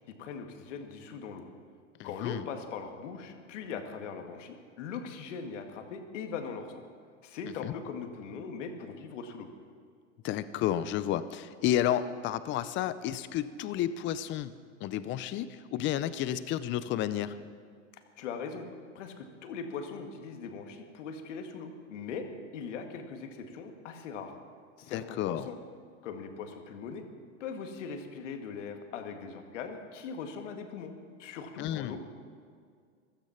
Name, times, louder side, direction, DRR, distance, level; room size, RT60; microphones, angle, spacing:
voice 1, 0.2-1.5 2.0-6.8 7.2-9.5 18.2-18.7 19.0-24.3 24.8-25.6 26.0-27.1 27.4-30.9 31.2-32.0, left 5 dB, 70° left, 5 dB, 2.0 m, -40 dB
voice 2, 2.0-2.4 7.6-7.7 10.2-14.5 14.8-17.3 24.9-25.5 31.6-32.0, left 11 dB, 30° left, 14 dB, 0.7 m, -31 dB
15.5 x 13.0 x 5.8 m, 2.1 s
hypercardioid pair, 120°, 38 cm